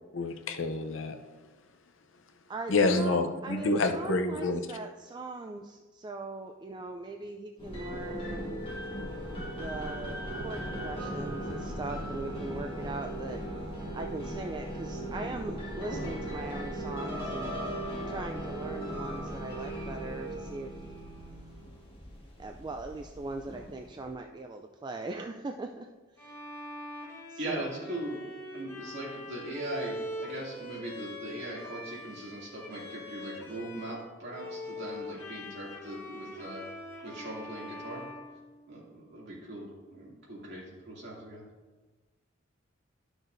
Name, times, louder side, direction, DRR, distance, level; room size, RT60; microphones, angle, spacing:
voice 1, 0.1-1.2 2.7-4.6, left 3 dB, 70° left, 7 dB, 0.6 m, -28 dB
voice 2, 2.5-8.7 9.6-13.4 13.9-17.6 18.1-20.8 22.4-25.9 26.2-26.4 27.3-27.8, right 2 dB, 20° right, 4 dB, 0.3 m, -40 dB
sound 1, 7.6-24.1, right 1 dB, 30° left, 1.6 m, -39 dB
sound 2, 8.6-20.5, equal, 80° right, 1.6 m, -44 dB
Bowed string instrument, 26.2-34.0 34.3-39.1, left 1 dB, 15° left, 1.3 m, -43 dB
voice 3, 27.4-28.2 28.5-36.6 37.0-38.0 38.7-41.4, right 1 dB, 60° right, -5 dB, 2.5 m, -40 dB
12.0 x 6.2 x 2.6 m, 1.3 s
head